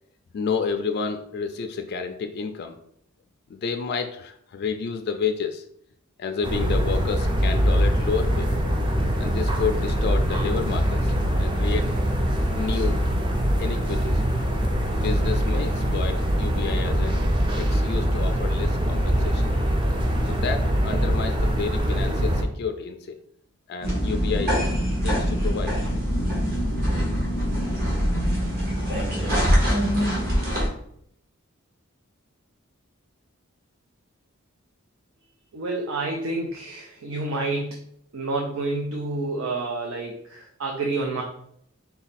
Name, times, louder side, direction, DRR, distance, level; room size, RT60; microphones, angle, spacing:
voice 1, 0.3-2.8 3.5-5.6 6.2-8.5 9.2-11.9 12.5-13.0 13.6-14.2 15.0-17.3 17.6-19.6 20.2-23.2 23.7-24.6 25.0-25.8, left 5 dB, 50° left, 5 dB, 0.3 m, -30 dB
sound 1, 6.4-22.4, equal, 25° right, 0.5 m, -23 dB
sound 2, 23.8-30.7, equal, 50° right, 1.4 m, -23 dB
voice 2, 35.5-37.8 38.1-41.2, right 2 dB, 80° right, 1 dB, 0.6 m, -29 dB
4.0 x 2.2 x 4.0 m, 0.69 s
head